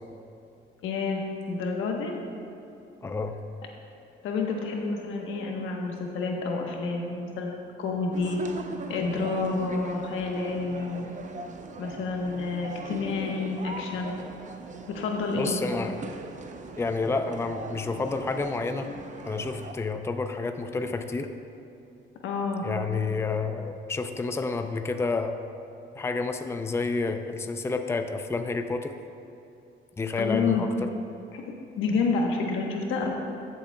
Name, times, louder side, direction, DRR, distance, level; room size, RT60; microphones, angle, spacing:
voice 1, 0.8-2.2 4.2-8.4 8.9-11.1 11.8-14.1 14.9-16.0 22.2-22.6 30.2-30.6 31.3-33.1, left 4 dB, 85° left, 1 dB, 1.1 m, -29 dB
voice 2, 3.0-3.4 15.4-16.1 16.8-18.9 19.2-21.3 22.6-25.3 26.0-28.9 30.0-30.9, left 4 dB, 15° left, 7 dB, 0.4 m, -29 dB
sound 1, 8.1-19.7, right 3 dB, 40° right, 0.6 m, -40 dB
15.5 x 7.0 x 2.3 m, 2.6 s
cardioid pair, 90°, 20 cm